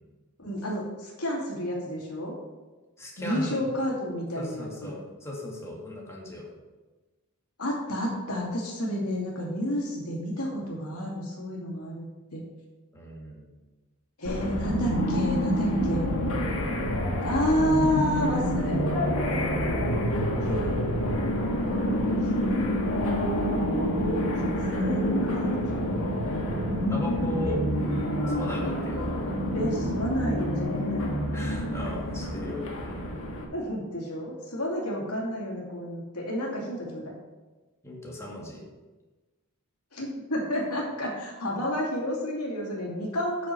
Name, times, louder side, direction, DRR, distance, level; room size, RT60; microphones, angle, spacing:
voice 1, 0.4-2.3 3.2-4.9 7.6-12.0 12.3-12.4 14.2-16.1 17.2-20.0 20.4-20.9 22.4-22.7 24.7-26.0 26.3-26.6 27.4-27.6 29.5-31.1 33.5-37.1 39.9-43.5, left 1 dB, 85° left, -3 dB, 2.5 m, -30 dB
voice 2, 3.0-3.6 4.4-6.5 12.9-13.5 26.9-27.6 28.3-29.0 31.3-33.3 37.8-38.6, left 1 dB, 15° left, -3 dB, 2.0 m, -37 dB
sound 1, 14.2-33.4, equal, 65° left, 1.7 m, -27 dB
8.5 x 6.2 x 5.7 m, 1.2 s
head